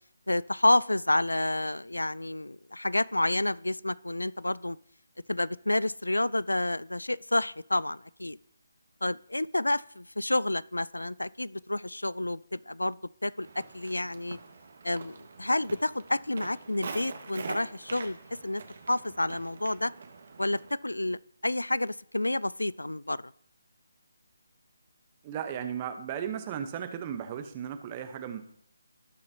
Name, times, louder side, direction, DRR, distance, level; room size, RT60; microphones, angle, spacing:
voice 1, 0.3-4.8 5.3-8.4 9.0-13.5 13.7-14.4 14.8-18.2 18.4-18.6 18.9-19.9 20.4-23.2, left 1 dB, 85° left, 23 dB, 0.3 m, -29 dB
Walk footsteps, 13.4-20.7, right 4 dB, 55° right, 1.6 m, -44 dB
voice 2, 25.2-28.4, right 8 dB, 25° right, 9 dB, 0.9 m, -35 dB
18.0 x 6.6 x 2.8 m, 0.69 s
figure-of-eight pair, 150°, 0 cm